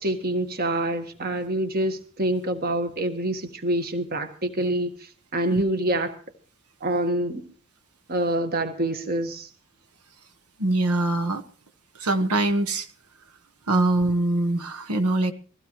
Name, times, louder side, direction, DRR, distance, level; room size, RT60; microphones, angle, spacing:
voice 1, 0.0-6.2 6.8-7.5 8.1-9.5, right 1 dB, 45° right, 1.6 m, -26 dB
voice 2, 10.6-11.4 11.9-12.9 13.7-15.3, right 2 dB, 90° right, 1.3 m, -23 dB
22.0 x 15.5 x 3.2 m
head